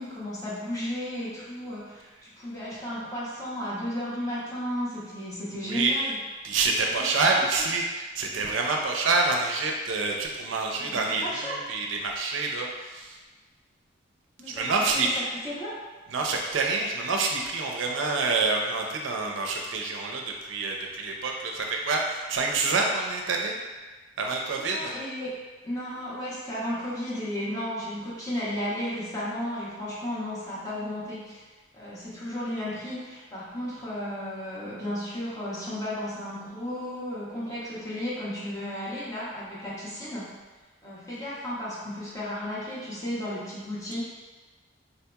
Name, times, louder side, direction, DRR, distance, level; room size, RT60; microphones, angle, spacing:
voice 1, 0.0-6.2 6.9-7.4 10.8-11.6 14.4-15.7 24.3-25.4 25.6-31.4 31.7-40.3 40.8-44.0, left 1 dB, 20° left, -9 dB, 0.9 m, -34 dB
voice 2, 6.4-13.2 14.5-15.1 16.1-23.5 24.2-24.9, right 3 dB, 80° right, 1 dB, 0.4 m, -27 dB
3.9 x 2.8 x 2.3 m, 1.3 s
head